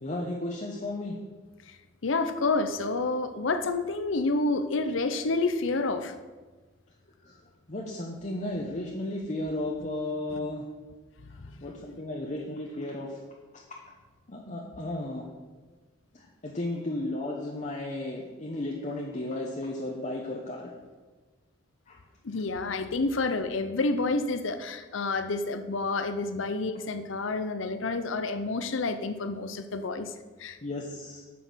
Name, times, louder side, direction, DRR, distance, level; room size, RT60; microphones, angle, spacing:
voice 1, 0.0-1.2 7.2-7.4 7.7-10.7 11.3-13.2 14.3-15.3 16.1-20.7 21.9-22.0 30.6-31.2, left 1 dB, 35° left, -1 dB, 0.9 m, -34 dB
voice 2, 2.0-6.2 11.4-11.7 22.2-30.1 30.4-30.6, left 3 dB, 75° left, 10 dB, 0.7 m, -29 dB
9.3 x 6.3 x 6.2 m, 1.3 s
head